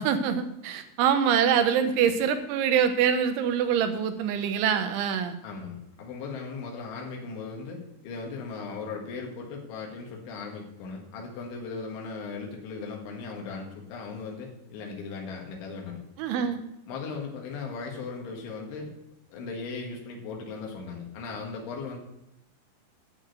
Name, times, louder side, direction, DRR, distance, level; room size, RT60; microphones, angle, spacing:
voice 1, 0.0-5.4 16.2-16.6, right 8 dB, 85° right, 8 dB, 3.4 m, -24 dB
voice 2, 5.4-16.0 16.3-16.5 16.9-18.9 19.3-22.0, left 4 dB, 85° left, 0 dB, 4.2 m, -38 dB
10.5 x 6.7 x 8.0 m, 0.84 s
omnidirectional pair, 5.3 m